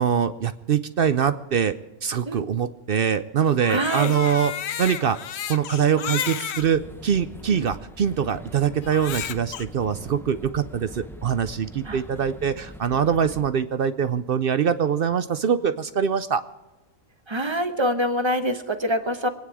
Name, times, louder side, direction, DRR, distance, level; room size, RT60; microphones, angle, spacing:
voice 1, 0.0-1.7 2.0-4.5 4.8-5.2 5.5-16.4, right 7 dB, 60° right, 12 dB, 0.6 m, -23 dB
Crying sobbing, 3.5-6.7 7.4-7.5 8.8-9.6, left 9 dB, 60° left, 0.8 m, -32 dB
voice 2, 3.7-4.1 6.0-6.1 7.5-7.6 11.8-12.0 17.3-19.3, equal, 25° right, 9 dB, 0.9 m, -25 dB
sound 1, 6.6-13.5, equal, 5° left, 0.3 m, -42 dB
24.5 x 9.5 x 4.8 m, 1.1 s
omnidirectional pair, 1.5 m